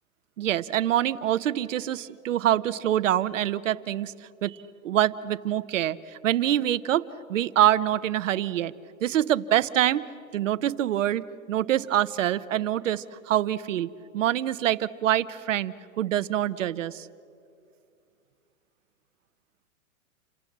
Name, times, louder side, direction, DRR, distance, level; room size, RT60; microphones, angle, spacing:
voice 1, 0.4-4.6 4.8-7.0 7.3-8.7 9.0-10.1 10.3-17.1, right 12 dB, 60° right, 14 dB, 1.0 m, -25 dB
28.5 x 26.5 x 7.5 m, 2.4 s
hypercardioid pair, 160°, 42 cm